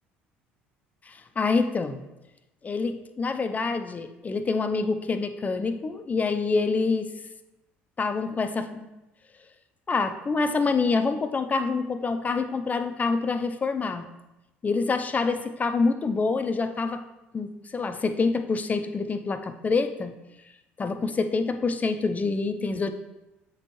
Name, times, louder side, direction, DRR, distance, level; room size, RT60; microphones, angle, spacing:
voice 1, 1.1-2.0 2.6-7.1 8.0-8.9 9.9-14.1 14.6-17.0 17.3-20.1 20.8-22.9, left 4 dB, 30° left, 8 dB, 0.5 m, -26 dB
7.4 x 4.2 x 3.1 m, 0.97 s
hypercardioid pair, 70°, 6 cm